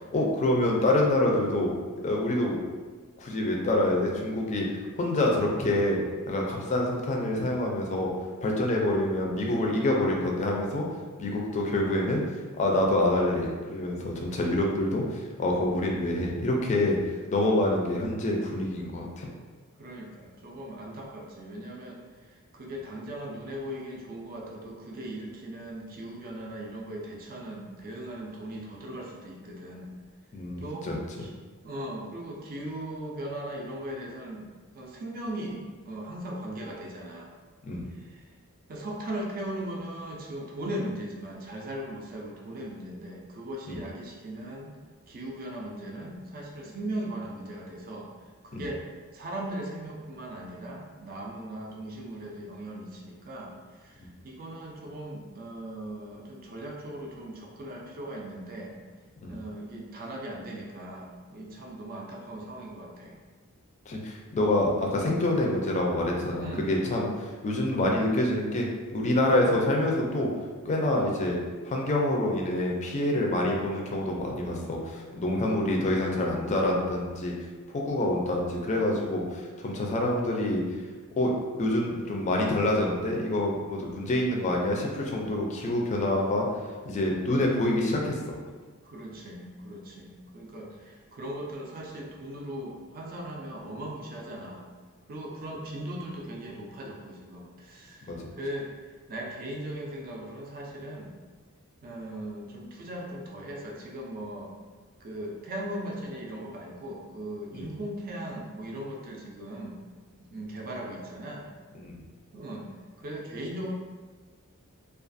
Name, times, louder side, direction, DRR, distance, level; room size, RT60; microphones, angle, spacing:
voice 1, 0.1-1.8 2.0-2.6 3.2-4.7 5.0-6.0 6.3-8.1 8.4-10.8 11.2-12.2 12.6-17.0 17.3-19.3 30.3-31.2 37.6-37.9 43.7-43.8 48.5-48.6 54.0-54.1 59.2-59.3 63.9-68.7 68.9-70.3 70.7-71.4 71.7-77.3 77.7-80.6 81.2-86.5 86.8-88.2 98.1-98.2 107.5-107.7 111.8-112.0, left 1 dB, 30° left, -1 dB, 0.4 m, -26 dB
voice 2, 19.8-29.9 30.6-30.9 31.2-31.3 31.6-34.5 34.7-37.3 37.9-38.3 38.7-44.8 45.1-48.1 48.4-48.8 49.1-58.7 59.3-63.2 66.4-66.7 88.8-94.7 95.1-98.7 99.1-101.1 101.8-104.5 105.0-109.8 110.2-111.4 112.3-112.7 113.0-113.7, right 1 dB, 40° right, -1 dB, 0.4 m, -38 dB
2.4 x 2.3 x 2.5 m, 1.4 s
head